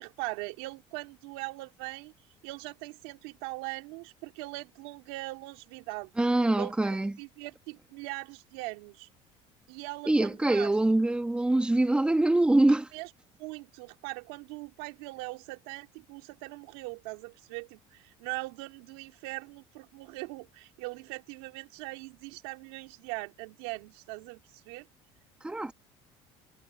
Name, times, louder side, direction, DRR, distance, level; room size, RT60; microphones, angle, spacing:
voice 1, 0.0-2.1 2.4-6.1 6.6-9.1 9.7-10.7 12.9-13.1 13.4-24.9, right 23 dB, 90° right, 3.6 m, -41 dB
voice 2, 6.2-7.2 10.1-12.9 25.4-25.7, right 2 dB, 10° right, 2.1 m, -24 dB
cardioid pair, 125°, 12 cm